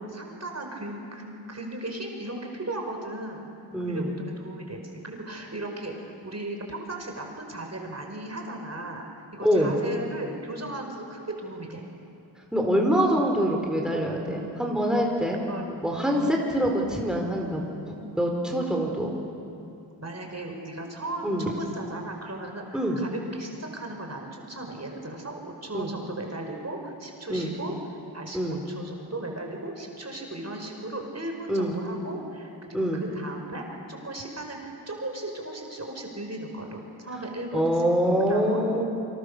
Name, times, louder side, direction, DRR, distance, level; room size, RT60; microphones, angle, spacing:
voice 1, 0.0-3.5 3.8-9.1 9.3-11.9 15.5-15.6 16.1-16.3 20.0-27.7 28.1-37.9 38.3-38.9, right 2 dB, 35° right, 2 dB, 5.1 m, -36 dB
voice 2, 3.7-4.1 9.4-9.8 12.5-15.4 15.8-17.6 17.9-19.1 21.2-21.5 22.7-23.0 25.7-25.9 27.3-27.5 28.3-28.6 31.5-31.8 32.7-33.0 37.5-38.8, equal, ahead, 0 dB, 4.6 m, -25 dB
27.0 x 26.0 x 6.9 m, 2.7 s
cardioid pair, 50°, 44 cm